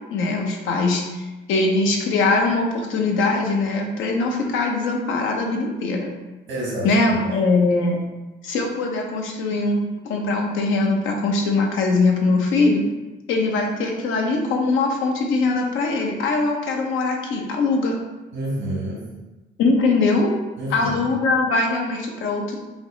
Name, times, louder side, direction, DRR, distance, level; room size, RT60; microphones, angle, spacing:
voice 1, 0.1-6.1 6.8-8.0 8.4-12.8 13.3-18.0 19.6-20.3 20.7-22.6, left 3 dB, 85° left, 1 dB, 0.8 m, -21 dB
voice 2, 6.5-7.2 18.3-19.1 20.6-21.1, right 1 dB, 85° right, -4 dB, 1.3 m, -28 dB
5.2 x 2.0 x 3.8 m, 1.1 s
cardioid pair, 90°, 20 cm